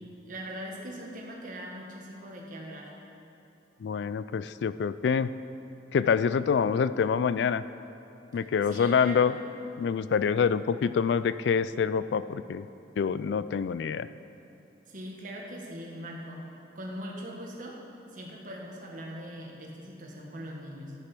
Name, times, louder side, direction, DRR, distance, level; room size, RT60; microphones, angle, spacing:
voice 1, 0.3-2.9 8.7-9.3 14.9-16.5 16.7-17.8 18.1-20.9, equal, 50° right, -1 dB, 1.6 m, -41 dB
voice 2, 3.8-5.3 5.9-7.6 8.3-9.3 9.8-12.7 13.0-14.1, left 6 dB, 75° left, 14 dB, 0.3 m, -26 dB
10.0 x 8.3 x 6.0 m, 2.9 s
head